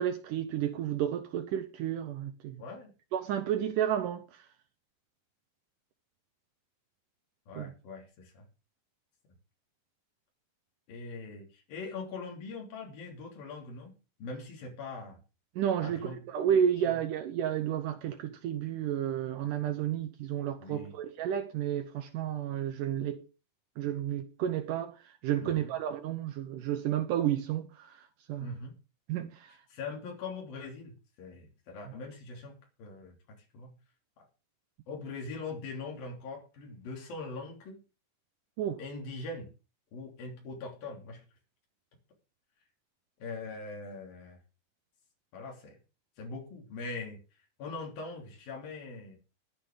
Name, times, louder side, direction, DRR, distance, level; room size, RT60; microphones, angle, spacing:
voice 1, 0.0-2.6 3.1-4.2 7.6-7.7 15.6-23.2 23.8-28.6 29.1-29.5 38.6-38.8, right 10 dB, 75° right, 2.4 m, -31 dB
voice 2, 2.6-2.9 7.5-8.5 10.9-15.2 15.8-16.2 16.8-17.0 20.6-20.9 25.4-25.7 28.4-28.7 29.7-33.2 33.5-33.7 34.2-34.3 34.9-37.8 38.8-39.5 39.9-41.2 43.2-44.4 45.3-45.8 46.2-47.2 47.6-49.2, left 3 dB, 85° left, 5.0 m, -42 dB
21.5 x 8.6 x 3.8 m
omnidirectional pair, 4.0 m